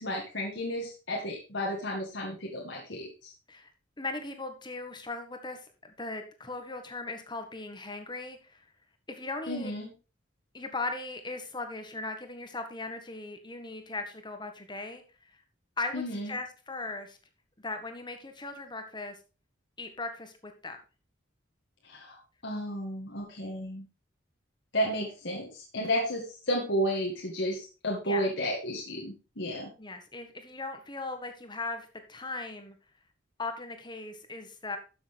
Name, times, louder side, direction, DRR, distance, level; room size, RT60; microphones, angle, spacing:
voice 1, 0.0-3.3 9.5-9.9 15.9-16.3 21.8-22.2 22.4-23.8 24.7-29.7, equal, 65° left, -2 dB, 2.1 m, -32 dB
voice 2, 4.0-8.6 9.1-9.7 10.5-15.3 15.8-17.2 17.6-19.2 19.8-20.8 25.8-25.9 28.0-28.3 29.8-32.7 33.4-34.8, left 3 dB, 25° left, 6 dB, 1.6 m, -38 dB
12.5 x 7.0 x 3.5 m, 0.32 s
head